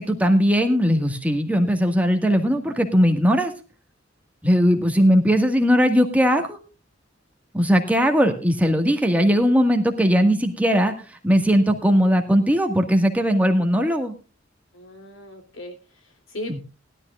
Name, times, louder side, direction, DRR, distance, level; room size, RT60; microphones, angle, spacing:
voice 1, 0.0-3.5 4.4-6.6 7.5-14.1 16.5-16.6, equal, 10° right, 4 dB, 1.6 m, -19 dB
voice 2, 14.7-16.6, left 1 dB, 85° left, 5 dB, 3.1 m, -38 dB
19.5 x 12.5 x 2.4 m, 0.31 s
head